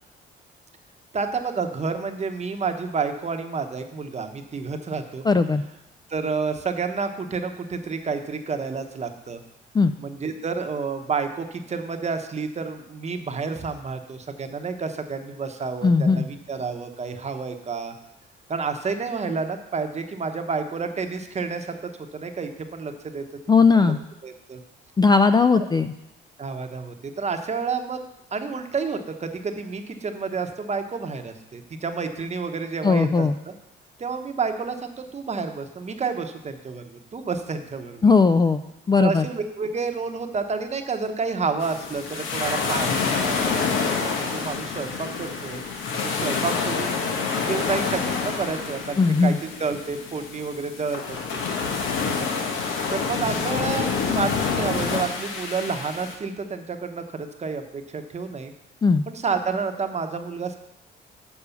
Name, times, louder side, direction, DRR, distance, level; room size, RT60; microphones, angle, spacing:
voice 1, 1.1-5.2 6.1-9.4 10.0-17.9 18.5-23.2 23.8-23.9 24.2-24.6 26.4-28.0 28.3-33.5 34.0-38.1 39.0-45.6 46.0-51.2 51.7-51.8 52.9-58.5 59.1-60.6, right 5 dB, 35° right, 6 dB, 0.9 m, -30 dB
voice 2, 5.2-5.6 9.7-9.9 15.8-16.3 23.5-24.0 25.0-25.9 32.8-33.4 38.0-38.6 38.9-39.3 49.0-49.4 58.8-59.0, left 4 dB, 20° left, 9 dB, 0.3 m, -18 dB
sound 1, 41.6-56.2, left 5 dB, 80° left, 1.1 m, -27 dB
7.0 x 4.8 x 7.0 m, 0.86 s
cardioid pair, 90°, 20 cm